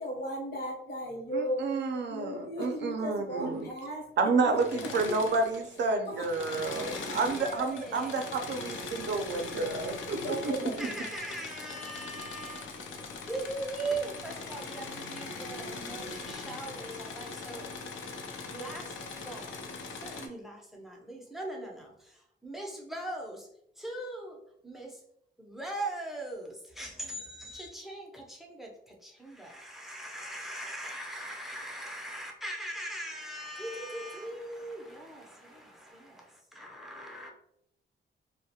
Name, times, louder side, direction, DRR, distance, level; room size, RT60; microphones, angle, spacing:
voice 1, 0.0-1.6 2.1-4.0 4.4-5.1 6.1-7.1 10.2-11.1, equal, 55° left, 0.8 m, -37 dB
voice 2, 1.3-3.7 4.2-10.9, right 3 dB, 65° right, 0.5 m, -30 dB
Engine / Mechanisms, 4.5-5.8 6.1-20.3, left 4 dB, 90° left, 0.4 m, -41 dB
voice 3, 7.2-8.3 10.8-12.9 13.3-17.7 18.5-23.5 23.8-25.0 25.4-37.3, right 2 dB, ahead, 0.5 m, -40 dB
2.3 x 2.1 x 2.7 m
cardioid pair, 110°, 19 cm